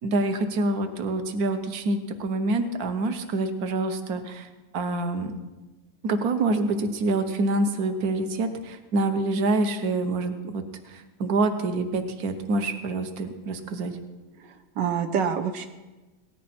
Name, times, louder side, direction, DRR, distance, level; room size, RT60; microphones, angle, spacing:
voice 1, 0.0-4.5 4.7-5.3 6.0-14.0, right 2 dB, 60° right, 7 dB, 1.6 m, -26 dB
voice 2, 14.4-15.7, right 7 dB, 80° right, 7 dB, 1.6 m, -27 dB
18.0 x 14.5 x 4.3 m, 1.2 s
omnidirectional pair, 1.9 m